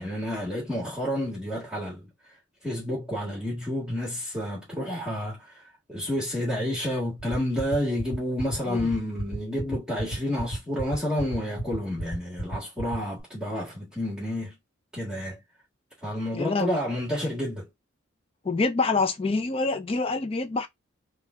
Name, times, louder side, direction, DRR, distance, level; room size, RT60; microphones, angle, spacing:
voice 1, 0.0-2.0 2.6-5.6 5.9-14.5 14.9-15.4 16.0-17.7, left 1 dB, 5° right, 1.5 m, -30 dB
sound 1, 7.2-13.2, right 1 dB, 60° left, 1.1 m, -31 dB
voice 2, 16.3-16.8 18.4-20.7, left 3 dB, 25° left, 0.4 m, -26 dB
3.6 x 2.3 x 3.6 m
head